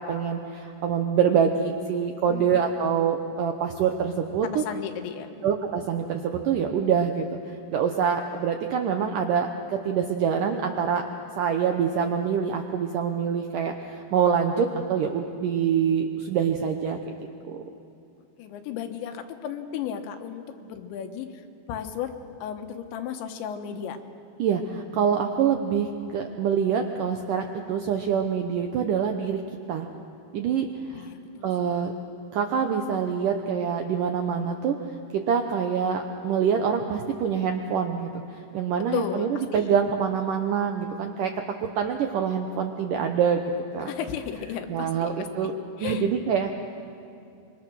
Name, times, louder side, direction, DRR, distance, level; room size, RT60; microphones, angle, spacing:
voice 1, 0.0-4.6 5.4-11.0 11.4-17.1 17.4-17.6 24.4-29.4 29.7-29.9 30.3-31.1 31.4-31.9 32.3-34.8 35.1-41.3 41.6-43.4 43.7-43.9 44.7-45.5 45.8-46.5, right 7 dB, 80° right, 4 dB, 1.9 m, -25 dB
voice 2, 4.4-5.5 18.4-22.1 22.4-24.0 25.1-25.3 30.9-31.8 38.9-39.8 43.9-45.5 45.8-46.0, left 8 dB, 80° left, 6 dB, 3.5 m, -34 dB
26.5 x 23.5 x 6.3 m, 2.5 s
omnidirectional pair, 5.1 m